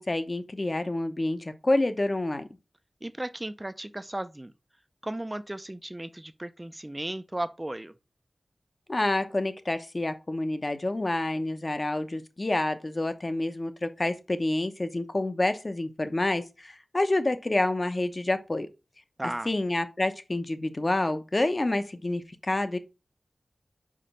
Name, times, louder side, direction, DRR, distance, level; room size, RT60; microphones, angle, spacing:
voice 1, 0.0-2.5 8.9-18.7 19.4-22.8, left 2 dB, 40° left, 0.9 m, -28 dB
voice 2, 3.0-4.5 5.0-7.9 19.2-19.5, right 1 dB, 20° right, 0.4 m, -35 dB
5.0 x 5.0 x 5.6 m
wide cardioid pair, 70°, 0 cm